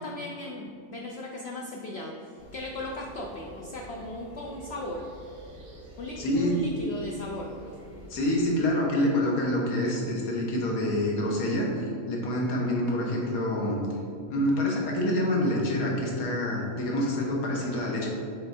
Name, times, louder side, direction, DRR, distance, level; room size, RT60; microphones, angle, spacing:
voice 1, 0.0-5.1 6.0-7.8, left 2 dB, 65° left, 0 dB, 0.6 m, -37 dB
sound 1, 2.4-8.3, right 1 dB, 80° right, 1.7 m, -47 dB
voice 2, 6.2-6.6 8.1-13.8 14.3-18.1, left 1 dB, 80° left, -2 dB, 1.5 m, -27 dB
6.7 x 3.3 x 4.2 m, 2.4 s
omnidirectional pair, 1.5 m